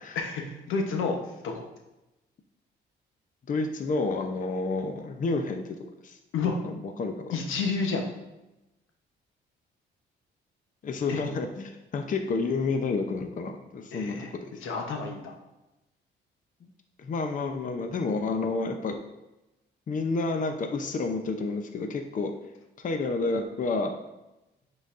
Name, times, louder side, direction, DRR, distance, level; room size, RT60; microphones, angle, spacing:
voice 1, 0.1-1.7 6.3-6.6 7.3-8.0 11.1-11.2 13.9-14.3 14.6-15.3, left 4 dB, 85° left, 2 dB, 1.0 m, -30 dB
voice 2, 3.5-5.6 6.0-6.2 6.6-6.7 7.0-7.3 10.8-14.5 16.6-16.7 17.0-19.0 19.9-22.3 22.8-23.9, left 3 dB, 40° left, 5 dB, 0.6 m, -30 dB
9.9 x 4.0 x 2.5 m, 0.97 s
cardioid pair, 90°, 20 cm